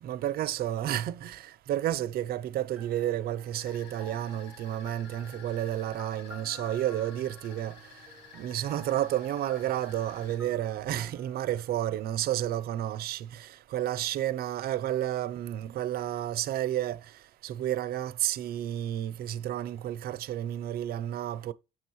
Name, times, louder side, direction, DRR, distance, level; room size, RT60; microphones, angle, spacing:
voice 1, 0.0-7.8 8.3-17.0 17.4-21.5, right 12 dB, 65° right, 0.6 m, -31 dB
sound 1, 2.8-12.6, equal, 5° right, 1.1 m, -52 dB
sound 2, 3.5-10.4, left 6 dB, 80° left, 1.4 m, -52 dB
7.5 x 6.3 x 3.1 m
cardioid pair, 110°, 17 cm